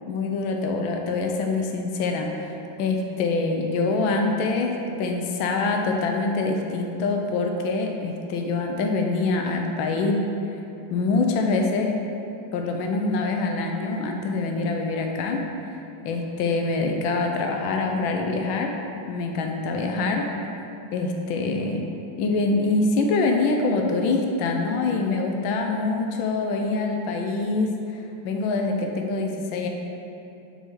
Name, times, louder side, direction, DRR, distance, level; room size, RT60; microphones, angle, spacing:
voice 1, 0.1-2.5 2.8-10.2 10.9-11.9 12.5-15.4 16.0-18.7 19.1-20.3 20.9-21.8 22.2-29.7, left 3 dB, 85° left, 2 dB, 1.4 m, -25 dB
6.2 x 3.9 x 4.6 m, 2.8 s
omnidirectional pair, 2.2 m